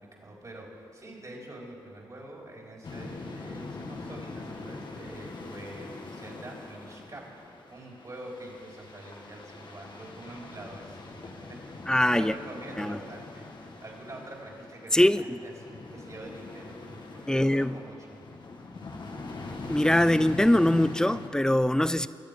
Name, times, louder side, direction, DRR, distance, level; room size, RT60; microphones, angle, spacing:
voice 1, 0.0-7.2 7.5-11.8 12.1-18.2, right 1 dB, 40° right, -2 dB, 4.0 m, -45 dB
sound 1, 2.8-21.3, left 3 dB, 55° left, 1.7 m, -43 dB
voice 2, 11.9-12.3 12.8-13.0 14.9-15.4 17.3-17.8 19.7-22.1, left 1 dB, 5° left, 15 dB, 0.4 m, -22 dB
22.5 x 7.8 x 5.2 m, 2.5 s
cardioid pair, 55°, 9 cm